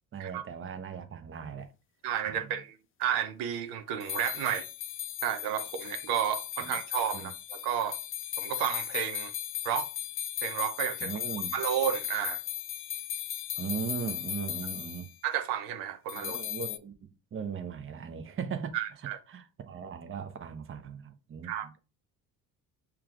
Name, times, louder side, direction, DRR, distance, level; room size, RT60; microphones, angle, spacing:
voice 1, 0.1-1.7 2.3-2.5 6.6-6.8 7.1-7.3 11.0-11.5 13.6-15.1 16.2-18.7 19.3-21.8, right 7 dB, 30° right, 0.7 m, -38 dB
voice 2, 2.0-4.7 5.2-8.0 8.4-9.3 9.6-9.9 10.4-11.1 11.5-12.4 15.2-16.4 18.7-19.2 21.4-21.7, right 10 dB, 75° right, 0.6 m, -32 dB
sound 1, 4.0-15.1 16.1-16.8, left 12 dB, 30° left, 0.4 m, -37 dB
5.7 x 2.3 x 2.4 m
hypercardioid pair, 60°, 42 cm